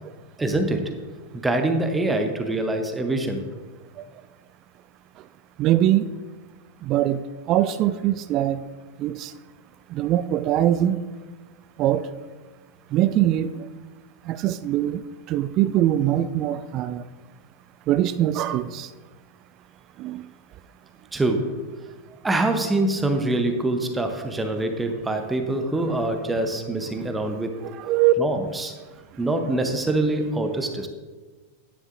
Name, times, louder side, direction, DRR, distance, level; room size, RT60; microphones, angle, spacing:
voice 1, 0.4-0.9 1.3-3.5 21.1-21.6 22.2-27.6 28.2-28.7 29.2-30.9, right 2 dB, 10° right, 6 dB, 0.8 m, -24 dB
voice 2, 5.6-6.0 6.8-8.6 9.0-9.3 9.9-11.0 11.8-12.0 12.9-13.6 14.3-15.0 15.3-17.0 17.9-18.9 20.0-20.2 27.6-28.1, right 13 dB, 35° right, 14 dB, 0.3 m, -22 dB
10.5 x 10.0 x 2.5 m, 1.4 s
figure-of-eight pair, 90°, 0 cm